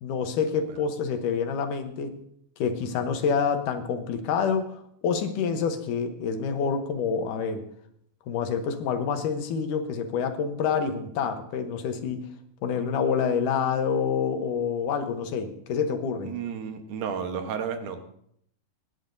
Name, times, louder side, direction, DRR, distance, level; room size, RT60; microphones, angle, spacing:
voice 1, 0.0-2.1 2.6-7.6 8.3-12.3 12.6-16.3, left 6 dB, 80° left, 7 dB, 2.6 m, -27 dB
voice 2, 16.2-18.0, right 7 dB, 75° right, 6 dB, 2.7 m, -32 dB
25.0 x 11.0 x 2.7 m, 0.70 s
omnidirectional pair, 3.7 m